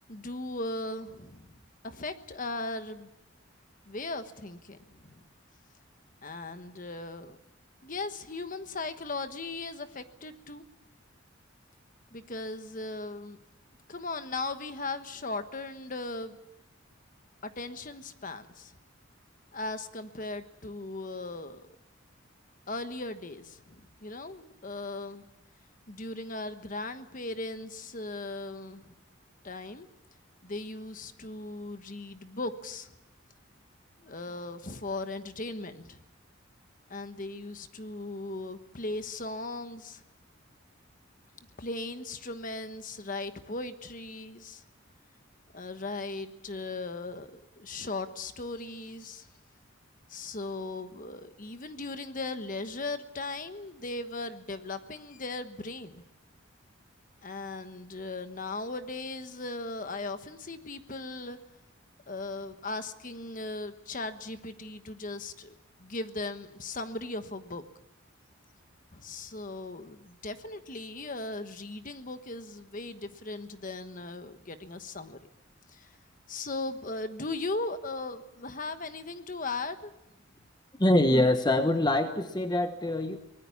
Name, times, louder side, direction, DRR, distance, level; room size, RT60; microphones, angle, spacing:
voice 1, 0.1-3.1 3.9-5.2 6.2-7.4 7.8-10.6 12.1-13.4 13.9-16.4 17.4-18.8 19.5-21.7 22.7-25.3 25.9-28.9 29.4-29.9 30.4-32.9 34.0-36.0 36.9-40.0 41.6-44.6 45.5-49.3 50.1-56.0 57.2-61.4 62.1-67.6 68.9-75.2 75.7-76.0 76.3-79.9, left 2 dB, 40° left, 9 dB, 1.3 m, -38 dB
voice 2, 80.8-83.2, left 1 dB, 20° left, 7 dB, 1.0 m, -24 dB
23.5 x 19.5 x 7.2 m, 0.90 s
head